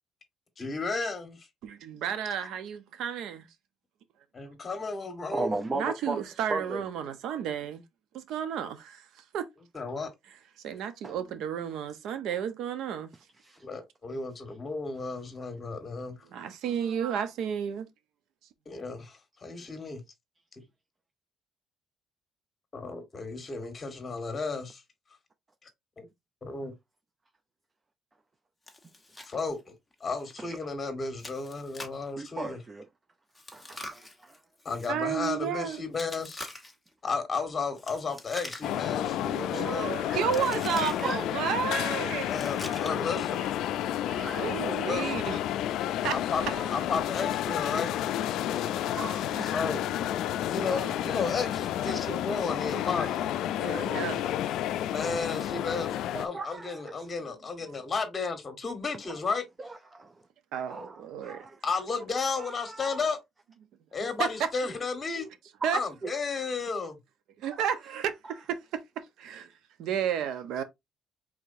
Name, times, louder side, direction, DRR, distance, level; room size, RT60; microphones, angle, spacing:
voice 1, 0.6-1.5 4.3-5.5 9.7-10.1 13.6-16.2 18.6-20.0 22.7-24.8 25.6-25.7 26.0-26.1 26.4-26.7 29.2-29.6 30.0-32.6 34.6-36.5 37.0-40.0 42.3-43.4 44.9-45.3 46.1-46.4 46.7-47.9 49.4-49.8 50.5-54.3 54.9-59.4 61.6-63.2 63.9-65.3 65.7-67.0, left 4 dB, 30° left, 1.5 m, -33 dB
voice 2, 1.6-3.5 5.7-7.8 8.1-9.0 9.3-9.5 10.6-13.1 16.3-17.9 34.9-35.9 39.2-42.3 42.6-42.8 43.8-44.0 44.3-45.4 46.0-46.2 49.3-49.5 53.6-54.2 60.5-61.4 64.2-64.3 65.6-65.8 67.4-68.8 69.2-69.5 69.8-70.6, right 8 dB, 80° right, 0.8 m, -32 dB
voice 3, 5.3-6.8 11.0-11.1 13.4-13.6 30.4-30.6 32.2-32.9 33.5-34.4 40.1-40.4 41.0-41.3 43.8-44.6 46.5-46.7 48.9-49.5 50.7-50.9 52.3-52.4 53.0-53.1 56.1-56.9 59.6-60.2 60.5-61.6 62.4-63.0 64.7-64.8 65.1-65.3 65.6-65.7 66.0-66.1, right 3 dB, 25° right, 0.5 m, -37 dB
Chewing mastication, 28.7-29.3 29.6-29.7 30.2-30.3 31.2-32.1 33.3-34.9 35.9-36.9 37.8-38.9 39.2-39.6 40.3-41.1 42.3-43.1, left 2 dB, 10° left, 1.3 m, -44 dB
sound 1, 38.6-56.3, left 11 dB, 80° left, 0.3 m, -31 dB
4.8 x 3.7 x 2.7 m
cardioid pair, 115°, 0 cm